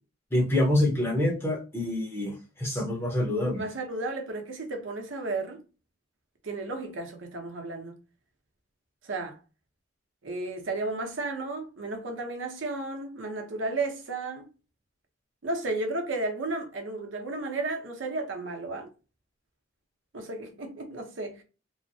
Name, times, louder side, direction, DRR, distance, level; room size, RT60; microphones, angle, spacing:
voice 1, 0.3-3.6, left 1 dB, 10° left, 0.8 m, -26 dB
voice 2, 3.6-5.6 6.4-7.9 9.0-9.4 10.2-14.5 15.4-18.9 20.1-21.4, right 2 dB, 75° right, 0.7 m, -33 dB
3.1 x 2.1 x 2.6 m
head